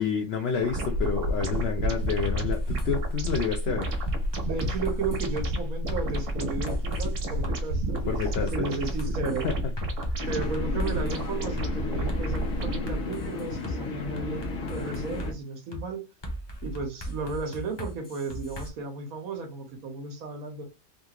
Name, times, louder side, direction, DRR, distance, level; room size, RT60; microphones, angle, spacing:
voice 1, 0.0-4.0 8.1-8.8 9.2-9.5 10.1-10.3, left 6 dB, 60° left, 0.8 m, -29 dB
sound 1, 0.6-13.0, equal, 65° right, 1.3 m, -30 dB
sound 2, 2.3-2.9 3.3-3.4 3.8-5.5 5.9-7.1 7.4-7.6 7.9-11.2 11.6-11.7 12.1-13.8 14.2-15.3 15.7-15.8 16.2-18.7, equal, 25° left, 0.7 m, -37 dB
voice 2, 4.4-8.1 8.5-9.5 10.3-16.0 16.6-20.6, right 4 dB, 85° right, 1.4 m, -34 dB
sound 3, 10.2-15.3, left 4 dB, 75° left, 1.3 m, -34 dB
3.6 x 2.4 x 2.8 m
omnidirectional pair, 1.4 m